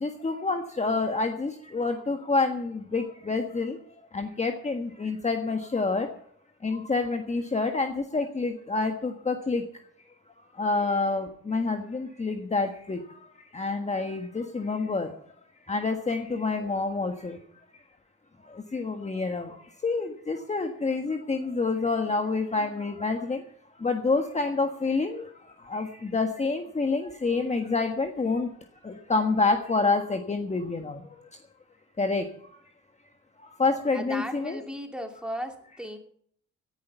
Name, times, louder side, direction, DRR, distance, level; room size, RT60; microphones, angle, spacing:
voice 1, 0.0-3.8 4.1-6.1 6.6-9.6 10.6-13.0 13.5-15.1 15.7-17.4 18.7-19.5 19.8-23.4 23.8-25.2 25.7-28.5 28.8-31.0 32.0-32.2 33.6-34.6, left 3 dB, 20° left, 5 dB, 1.5 m, -27 dB
voice 2, 33.9-36.0, equal, 5° right, 4 dB, 2.8 m, -36 dB
17.5 x 10.5 x 5.7 m, 0.62 s
cardioid pair, 90°, 30 cm